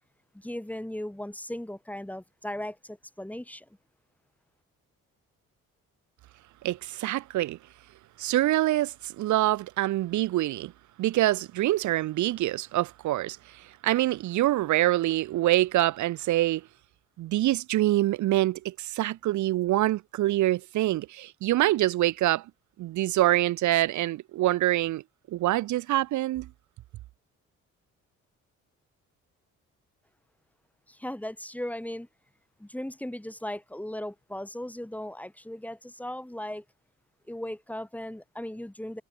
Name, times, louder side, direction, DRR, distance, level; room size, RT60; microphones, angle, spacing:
voice 1, 0.3-3.7 30.9-32.1 32.6-36.6 37.3-39.0, left 1 dB, 5° left, 4.2 m, -37 dB
voice 2, 6.6-7.6 8.2-10.7 11.0-16.7 17.2-22.5 22.8-25.0 25.3-26.5, right 15 dB, 70° right, 0.7 m, -25 dB
cardioid pair, 90°, 30 cm